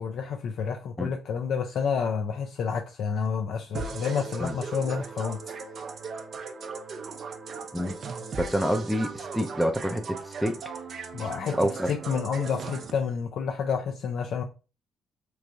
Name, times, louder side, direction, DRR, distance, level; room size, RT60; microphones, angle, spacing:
voice 1, 0.0-5.4 11.1-11.6 11.9-14.4, left 6 dB, 70° left, 0.4 m, -29 dB
sound 1, 3.7-12.9, right 4 dB, 55° right, 0.5 m, -38 dB
voice 2, 8.4-10.6 11.6-11.9, equal, ahead, 0.4 m, -27 dB
3.0 x 2.5 x 3.4 m
cardioid pair, 90°, 0 cm